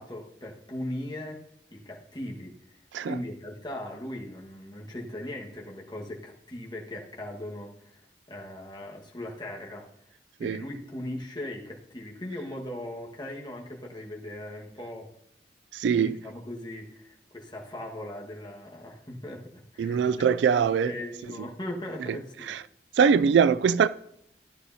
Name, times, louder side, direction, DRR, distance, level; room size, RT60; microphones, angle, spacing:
voice 1, 0.0-1.4 1.7-2.5 3.0-8.0 8.3-9.9 10.4-15.1 16.0-20.0 20.5-22.6, left 1 dB, 25° left, 1.5 m, -39 dB
voice 2, 15.7-16.2 19.8-20.9 22.5-22.6 23.0-23.9, right 6 dB, 90° right, 0.3 m, -22 dB
13.0 x 11.0 x 2.8 m
head